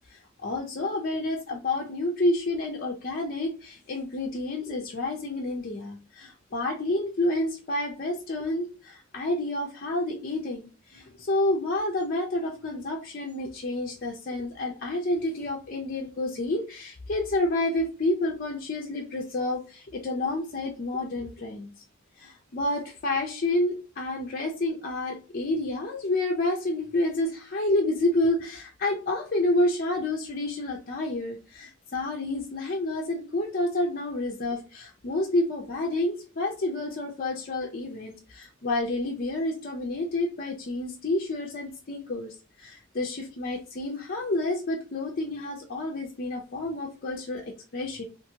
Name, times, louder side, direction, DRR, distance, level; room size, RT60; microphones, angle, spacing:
voice 1, 0.1-21.7 22.2-42.3 42.6-48.0, left 2 dB, 45° left, 0 dB, 0.5 m, -29 dB
2.7 x 2.5 x 2.7 m, 0.33 s
head